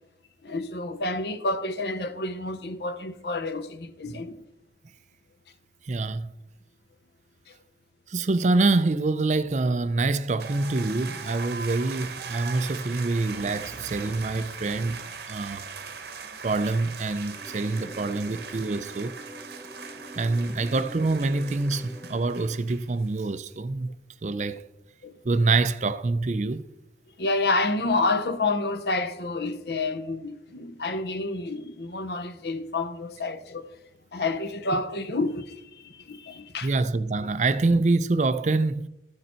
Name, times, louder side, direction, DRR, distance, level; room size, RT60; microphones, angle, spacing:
voice 1, 0.4-4.4 7.5-7.6 17.8-17.9 25.0-25.2 27.2-33.7 34.1-36.7, left 2 dB, 65° left, 0.8 m, -29 dB
voice 2, 5.8-6.3 8.1-15.7 16.4-19.1 20.2-23.9 24.2-24.6 25.2-26.6 36.6-38.9, right 3 dB, 40° right, 0.4 m, -26 dB
sound 1, 10.4-23.1, right 5 dB, 65° right, 1.1 m, -40 dB
sound 2, 17.3-22.6, equal, 10° left, 0.8 m, -45 dB
13.5 x 6.7 x 4.4 m
head